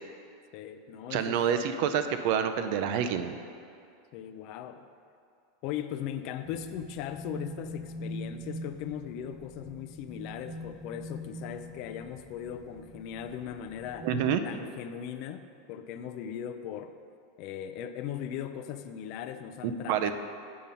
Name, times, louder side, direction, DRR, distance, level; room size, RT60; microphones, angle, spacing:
voice 1, 0.5-1.4 4.1-4.9 5.6-14.1 14.4-17.0 17.4-20.1, left 9 dB, 45° left, 10 dB, 0.4 m, -38 dB
voice 2, 1.1-3.3 14.0-14.4 19.6-20.1, right 8 dB, 50° right, 9 dB, 0.5 m, -28 dB
sound 1, 6.4-14.4, equal, 10° right, 0.7 m, -43 dB
7.5 x 5.3 x 5.6 m, 2.4 s
supercardioid pair, 160°, 0 cm